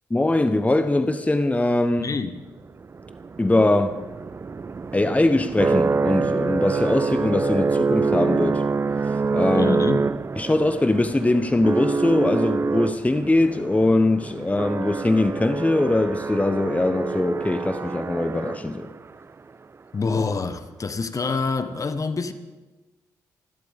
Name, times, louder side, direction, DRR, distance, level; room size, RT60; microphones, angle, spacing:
voice 1, 0.1-2.1 3.4-4.0 4.9-8.6 9.0-9.8 10.4-18.9, left 2 dB, 15° left, 1.2 m, -22 dB
voice 2, 2.0-2.3 9.5-10.1 19.9-22.3, left 4 dB, 40° left, 1.4 m, -26 dB
sound 1, 2.8-19.0, right 4 dB, 30° right, 0.4 m, -26 dB
26.5 x 12.5 x 3.7 m
hypercardioid pair, 40°, 9 cm